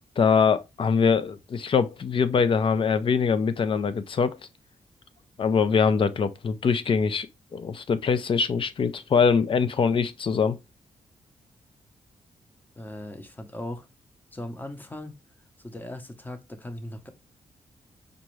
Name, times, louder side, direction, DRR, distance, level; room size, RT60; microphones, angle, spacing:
voice 1, 0.2-4.4 5.4-7.3 7.5-10.6, left 6 dB, 45° left, 0.5 m, -23 dB
voice 2, 12.8-13.9 14.3-15.1 15.6-17.1, left 1 dB, 15° left, 0.8 m, -38 dB
5.1 x 2.3 x 3.0 m
cardioid pair, 95°, 12 cm